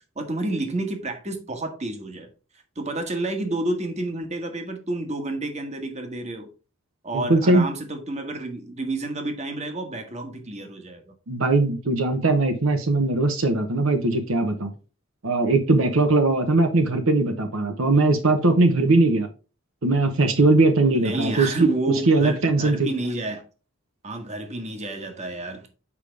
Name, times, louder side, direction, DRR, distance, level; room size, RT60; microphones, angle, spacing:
voice 1, 0.1-2.3 2.8-6.5 7.0-11.1 21.0-23.4 24.0-25.7, right 2 dB, 30° right, 1.3 m, -30 dB
voice 2, 7.1-7.7 11.3-14.7 15.2-19.3 19.8-22.9, right 2 dB, 65° right, 1.0 m, -20 dB
7.4 x 5.0 x 3.4 m
head